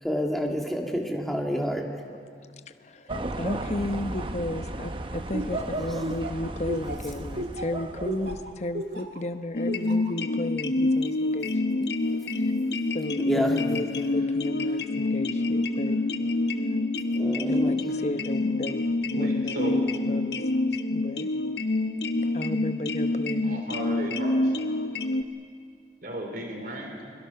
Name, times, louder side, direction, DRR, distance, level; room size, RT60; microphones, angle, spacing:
voice 1, 0.0-1.8 13.2-13.6 17.1-17.8, equal, ahead, 0 dB, 2.1 m, -28 dB
voice 2, 2.8-11.9 12.3-12.4 12.9-16.0 17.5-18.9 19.1-20.4 20.9-21.3 22.3-23.6, left 1 dB, 40° left, 9 dB, 0.9 m, -34 dB
sound 1, 3.1-8.6, right 1 dB, 30° right, 0.9 m, -35 dB
Laughter, 5.3-9.2 9.7-10.1, right 1 dB, 70° right, 1.9 m, -34 dB
sound 2, 9.5-25.2, left 2 dB, 70° left, 1.1 m, -27 dB
voice 3, 19.1-19.8 23.4-24.5 26.0-27.0, right 1 dB, 55° right, 2 dB, 3.9 m, -35 dB
29.5 x 22.5 x 5.9 m, 2.3 s
head